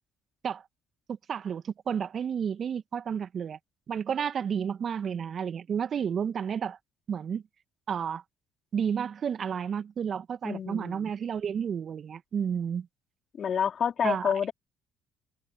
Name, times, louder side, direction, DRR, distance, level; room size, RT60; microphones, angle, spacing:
voice 1, 1.3-3.6 3.9-6.8 7.1-7.4 7.9-8.2 8.7-12.9 14.0-14.3, right 7 dB, 50° right, 1.9 m, -31 dB
voice 2, 10.4-11.1 13.4-14.5, left 7 dB, 50° left, 3.3 m, -28 dB
hypercardioid pair, 55°, 0 cm